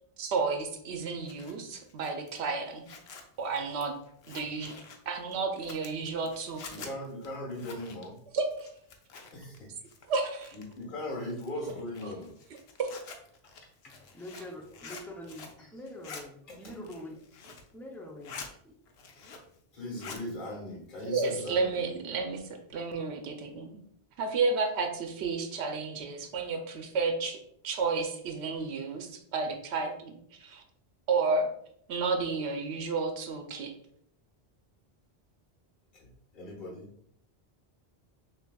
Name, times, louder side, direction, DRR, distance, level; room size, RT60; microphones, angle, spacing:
voice 1, 0.2-2.8 3.4-3.9 4.3-4.7 5.1-6.9 8.3-8.7 10.1-10.5 12.8-12.9 21.1-23.8 24.2-27.4 27.6-30.6 31.1-31.5 31.9-33.7, right 4 dB, 80° right, 0.9 m, -31 dB
Zipper (clothing), 1.0-9.6 9.8-10.8 11.3-15.6 15.9-16.2 16.7-17.7 18.0-18.5 18.9-19.6 19.8-20.2, left 4 dB, 75° left, 0.9 m, -47 dB
voice 2, 6.7-8.2 9.3-9.7 10.5-12.3 13.4-13.5 14.9-15.1 15.6-15.9 16.5-17.2 19.7-22.0 36.0-36.9, left 1 dB, 50° left, 1.2 m, -40 dB
voice 3, 13.9-17.2 17.7-18.4 18.6-18.7, left 1 dB, 5° left, 0.3 m, -45 dB
6.0 x 2.8 x 2.3 m
omnidirectional pair, 1.1 m